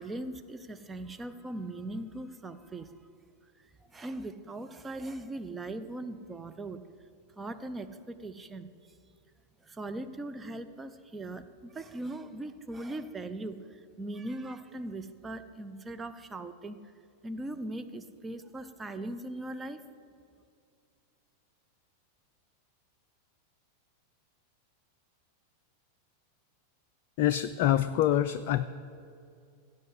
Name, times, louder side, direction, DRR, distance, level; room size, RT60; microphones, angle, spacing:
voice 1, 0.0-3.0 3.6-6.9 7.4-8.7 9.6-16.9 17.2-19.8, right 2 dB, 15° right, 10 dB, 0.6 m, -40 dB
voice 2, 27.2-28.7, left 12 dB, 45° left, 11 dB, 0.3 m, -25 dB
16.0 x 5.5 x 7.9 m, 2.4 s
figure-of-eight pair, 90°, 0 cm